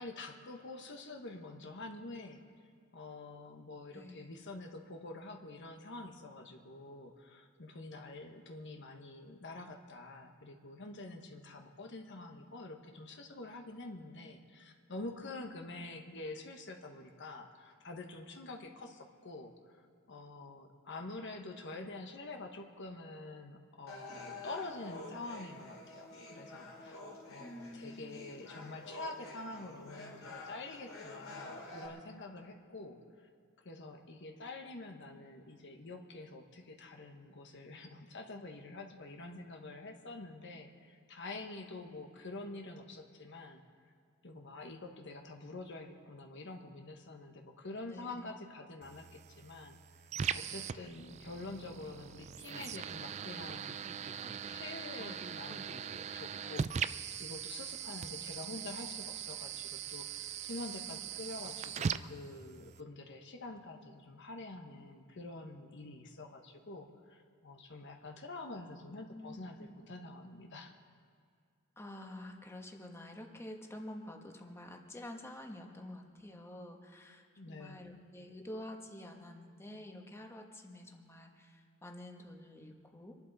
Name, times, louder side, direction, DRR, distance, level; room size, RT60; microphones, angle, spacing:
voice 1, 0.0-2.4 2.9-27.0 27.3-33.3 33.6-43.6 44.2-49.8 50.3-70.7 77.4-77.8, left 2 dB, 60° left, 4 dB, 1.2 m, -47 dB
voice 2, 3.9-4.3 27.4-28.3 47.7-48.5 69.1-69.7 71.8-83.2, left 1 dB, 15° left, 2 dB, 1.3 m, -48 dB
sound 1, 23.9-31.9, left 2 dB, 85° left, 2.8 m, -49 dB
sound 2, 48.8-62.8, right 7 dB, 35° right, 0.3 m, -41 dB
26.0 x 11.0 x 4.1 m, 2.1 s
head